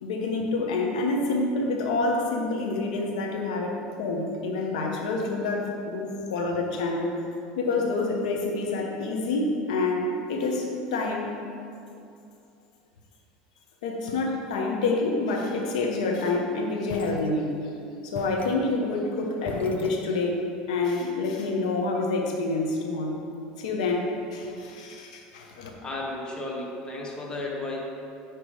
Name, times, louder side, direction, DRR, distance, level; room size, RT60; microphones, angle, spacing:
voice 1, 0.0-7.2 7.5-11.4 13.8-17.7 18.0-23.2 23.6-25.7, left 3 dB, 85° left, 1 dB, 1.0 m, -27 dB
sound 1, 16.9-17.8 18.1-20.5, left 6 dB, 40° left, 0.6 m, -42 dB
voice 2, 25.8-27.8, left 2 dB, 20° left, -3 dB, 1.4 m, -33 dB
9.3 x 3.2 x 4.7 m, 2.5 s
supercardioid pair, 95°, 4 cm